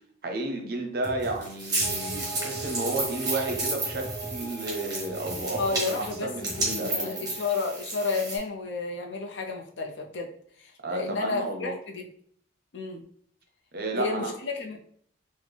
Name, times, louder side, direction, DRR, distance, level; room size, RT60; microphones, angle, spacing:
voice 1, 0.2-7.3 10.8-11.7 13.7-14.3, right 2 dB, 50° right, 3 dB, 0.6 m, -32 dB
sound 1, 1.0-6.9, left 1 dB, 10° left, 1.0 m, -43 dB
sound 2, 1.2-8.4, right 2 dB, 20° right, 1.0 m, -32 dB
sound 3, 1.8-7.4, right 4 dB, 30° left, 1.4 m, -41 dB
voice 2, 5.6-10.3 10.6-12.1 12.7-13.0 14.0-14.8, left 4 dB, 65° left, 2 dB, 0.5 m, -31 dB
3.9 x 2.1 x 3.3 m, 0.62 s
head